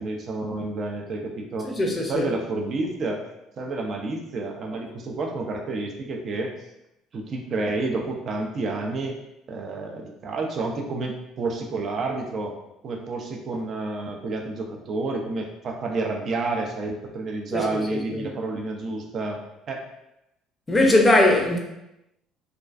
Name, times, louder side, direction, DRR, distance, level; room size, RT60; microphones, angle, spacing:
voice 1, 0.0-1.7 2.1-3.2 3.6-6.5 7.1-9.2 9.5-12.5 12.8-19.8, right 3 dB, 50° right, 0.4 m, -30 dB
voice 2, 1.6-2.3 17.5-17.6 20.7-21.6, left 1 dB, 20° left, 0.5 m, -19 dB
2.3 x 2.2 x 2.4 m
supercardioid pair, 85°, 0 cm